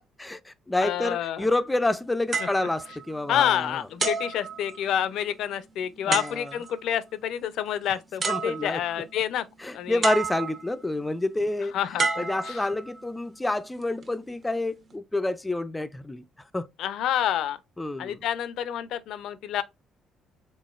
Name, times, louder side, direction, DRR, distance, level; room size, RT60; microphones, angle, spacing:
voice 1, 0.2-3.8 6.1-6.5 8.3-8.8 9.6-11.8 12.2-16.2 16.5-16.7 17.8-18.2, left 2 dB, 10° left, 0.4 m, -28 dB
voice 2, 0.8-1.5 2.4-2.7 3.3-9.5 9.7-10.1 11.7-12.7 16.8-17.6 18.0-19.6, left 10 dB, 75° left, 0.5 m, -28 dB
sound 1, 2.3-3.5 4.0-5.2 6.1-6.8 7.8-7.9 8.2-9.0 10.0-10.8 12.0-13.1 13.8-14.1, right 4 dB, 40° right, 0.9 m, -31 dB
3.8 x 3.6 x 2.4 m
cardioid pair, 120°, 0 cm